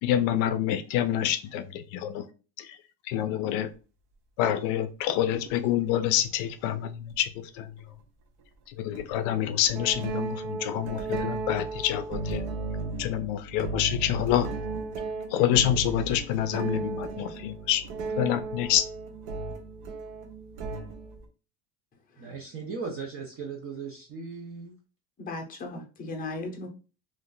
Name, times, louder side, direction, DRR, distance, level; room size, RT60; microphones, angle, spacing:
voice 1, 0.0-2.2 2.6-2.7 3.1-3.7 4.4-7.3 7.6-7.7 8.8-12.4 13.0-14.5 15.3-17.8 18.2-18.9, left 11 dB, 60° left, 0.5 m, -27 dB
sound 1, 5.5-5.6 7.1-7.2 8.9-9.1 9.6-21.2, right 3 dB, 60° right, 0.7 m, -35 dB
voice 2, 22.2-24.7, right 5 dB, 30° right, 0.4 m, -37 dB
voice 3, 25.2-26.7, left 2 dB, 15° left, 0.7 m, -37 dB
2.5 x 2.3 x 3.7 m
cardioid pair, 145°, 49 cm